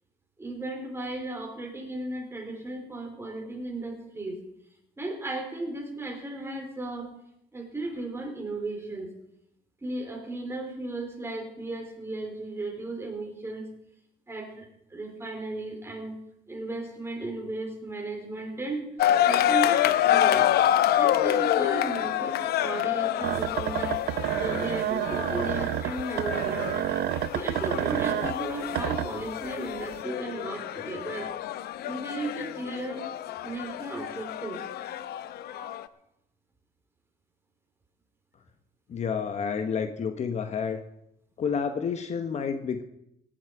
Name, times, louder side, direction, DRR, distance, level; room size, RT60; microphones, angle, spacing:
voice 1, 0.4-4.4 5.0-7.1 7.5-9.1 9.8-13.7 14.3-16.2 16.5-18.8 19.3-20.5 21.0-24.0 24.4-26.7 27.3-31.3 31.8-33.0 33.4-34.6 35.5-35.8, right 2 dB, 15° right, 2 dB, 4.0 m, -35 dB
sound 1, 19.0-35.9, left 12 dB, 70° left, 0.7 m, -27 dB
sound 2, 23.2-29.5 29.9-30.0, right 13 dB, 70° right, 0.6 m, -29 dB
voice 2, 38.9-40.8 41.4-42.8, left 6 dB, 40° left, 8 dB, 1.1 m, -29 dB
17.5 x 11.5 x 4.7 m, 0.78 s
cardioid pair, 110°, 17 cm